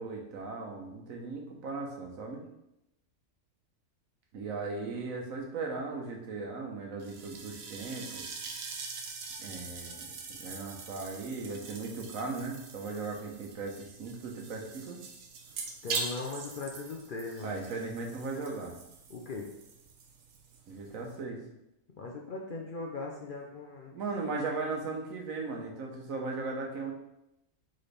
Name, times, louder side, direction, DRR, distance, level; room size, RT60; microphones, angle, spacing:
voice 1, 0.0-2.4 4.3-8.2 9.4-15.0 17.4-18.7 20.7-21.4 23.9-26.9, right 3 dB, 85° right, 1 dB, 1.3 m, -37 dB
sound 1, 7.0-21.2, right 4 dB, 65° right, 0.9 m, -43 dB
voice 2, 15.8-17.6 19.1-19.5 22.0-23.9, left 3 dB, 55° left, -1 dB, 0.6 m, -39 dB
4.1 x 3.8 x 3.3 m, 0.87 s
omnidirectional pair, 1.4 m